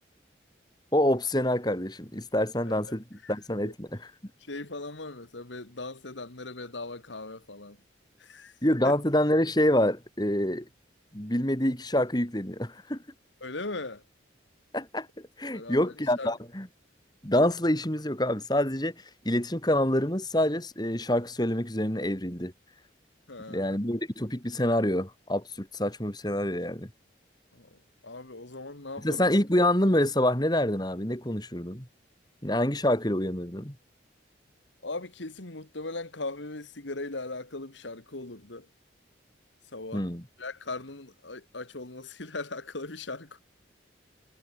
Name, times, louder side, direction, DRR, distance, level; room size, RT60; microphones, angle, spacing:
voice 1, 0.9-3.9 8.6-10.7 11.1-13.0 14.7-15.1 15.4-16.7 17.2-18.9 19.2-22.5 23.5-26.9 29.0-31.9 32.4-33.7 39.9-40.2, left 1 dB, 20° left, 3.1 m, -26 dB
voice 2, 2.6-3.3 3.7-3.8 4.4-7.8 8.2-8.6 8.8-9.0 13.4-14.0 15.5-16.3 23.3-23.8 27.5-29.4 34.8-38.7 39.7-40.1 40.4-43.4, left 2 dB, 80° left, 2.2 m, -39 dB
head